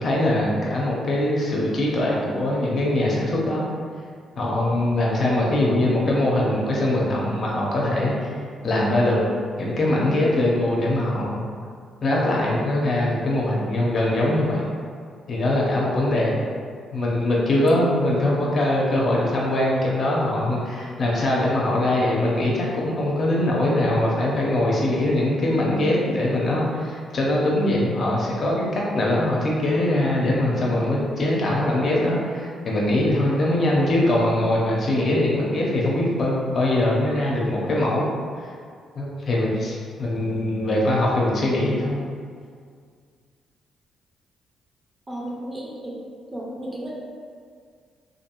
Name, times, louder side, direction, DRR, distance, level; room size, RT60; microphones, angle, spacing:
voice 1, 0.0-3.7 4.4-9.3 9.6-11.5 12.0-14.7 15.3-16.4 16.9-38.1 39.0-42.0, left 1 dB, 50° left, -3 dB, 0.7 m, -22 dB
voice 2, 45.1-46.0 46.3-46.9, right 1 dB, 20° right, -4 dB, 0.5 m, -33 dB
2.6 x 2.6 x 2.9 m, 2.1 s
cardioid pair, 90°, 0 cm